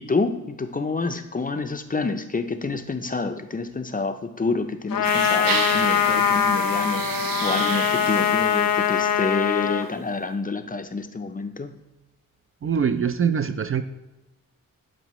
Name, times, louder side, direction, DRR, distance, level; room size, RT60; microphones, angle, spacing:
voice 1, 0.0-11.8, left 3 dB, 25° left, 7 dB, 0.5 m, -28 dB
Trumpet, 4.9-9.9, left 8 dB, 90° left, 0.5 m, -22 dB
sound 1, 5.0-9.4, right 6 dB, 90° right, 0.6 m, -31 dB
voice 2, 12.6-13.8, right 7 dB, 40° right, 10 dB, 0.4 m, -23 dB
11.0 x 5.0 x 3.0 m, 1.0 s
wide cardioid pair, 95°, 33 cm